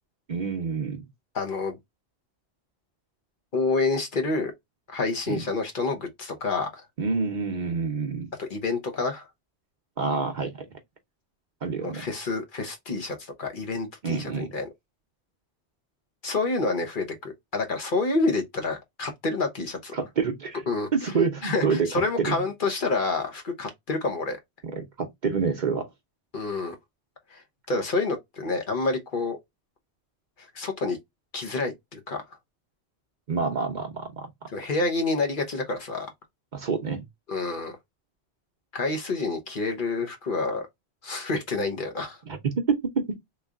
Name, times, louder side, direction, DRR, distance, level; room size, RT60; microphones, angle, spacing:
voice 1, 0.3-1.1 5.3-5.4 7.0-8.3 10.0-10.7 11.6-12.0 14.0-14.5 19.9-20.6 20.9-21.9 22.2-22.4 24.6-25.9 33.3-34.3 36.5-37.0 42.3-43.2, right 5 dB, 50° right, 0.7 m, -27 dB
voice 2, 1.3-1.8 3.5-4.5 4.9-6.8 8.4-9.3 11.8-14.7 16.2-19.9 20.7-20.9 21.4-24.4 26.3-26.8 27.3-27.4 27.7-29.4 30.5-31.0 31.3-32.2 34.5-36.1 37.3-37.7 38.7-40.7 41.0-42.2, left 3 dB, 50° left, 1.0 m, -28 dB
3.6 x 3.1 x 2.3 m
omnidirectional pair, 1.1 m